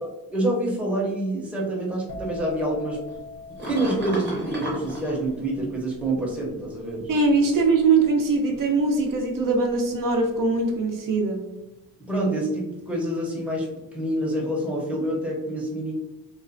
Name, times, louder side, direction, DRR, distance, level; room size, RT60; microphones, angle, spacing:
voice 1, 0.0-3.0 3.7-7.1 12.1-13.7 13.9-15.9, right 1 dB, 5° right, -4 dB, 0.6 m, -27 dB
sound 1, 2.1-9.7 9.9-10.4, left 3 dB, 60° left, 0.7 m, -42 dB
sound 2, 3.1-6.3 7.2-8.4 9.0-9.6 13.8-13.9, equal, 30° right, 0.8 m, -35 dB
voice 2, 7.1-11.4, right 3 dB, 65° right, 2 dB, 0.5 m, -21 dB
3.0 x 2.0 x 2.5 m, 0.97 s
wide cardioid pair, 155°, 37 cm